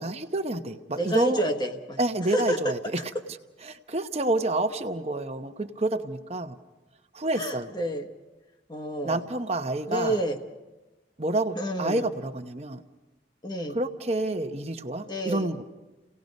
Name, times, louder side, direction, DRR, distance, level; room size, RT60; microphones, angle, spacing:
voice 1, 0.0-1.4 2.0-3.1 3.6-6.6 7.1-7.7 9.0-10.2 11.2-12.8 13.7-15.6, right 2 dB, 35° right, 8 dB, 0.9 m, -28 dB
voice 2, 1.0-2.0 2.3-2.6 7.3-8.1 8.7-9.2 9.9-10.4 11.6-12.0 13.4-13.8 15.1-15.5, equal, 25° left, 5 dB, 1.2 m, -29 dB
30.0 x 18.0 x 5.3 m, 1.1 s
head